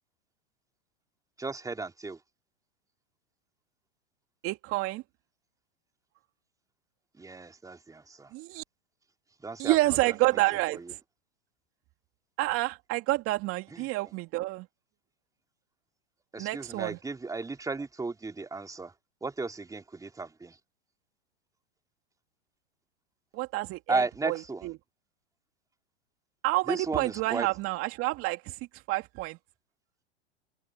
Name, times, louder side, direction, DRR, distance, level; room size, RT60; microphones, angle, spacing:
voice 1, 1.4-2.2 7.2-8.3 9.4-9.8 10.1-10.2 10.7-10.9 13.7-13.9 16.3-18.9 19.2-20.6 23.9-24.7 26.7-27.5, right 3 dB, 10° right, 3.6 m, -34 dB
voice 2, 4.4-5.0 8.3-8.6 9.6-11.0 12.4-14.7 16.4-17.0 23.3-24.4 24.6-24.7 26.4-28.6 28.9-29.4, right 20 dB, 45° right, 2.4 m, -29 dB
hypercardioid pair, 100°, 32 cm